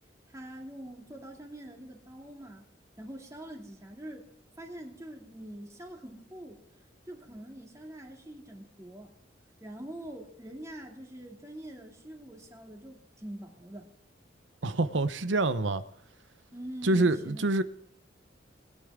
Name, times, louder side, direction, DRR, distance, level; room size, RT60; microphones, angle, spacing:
voice 1, 0.3-2.6 3.0-4.3 4.6-6.6 7.1-9.1 9.6-13.9 16.5-17.4, right 1 dB, 15° right, 2.6 m, -44 dB
voice 2, 14.6-15.8 16.8-17.6, right 2 dB, 80° right, 0.9 m, -26 dB
20.0 x 10.0 x 3.7 m
head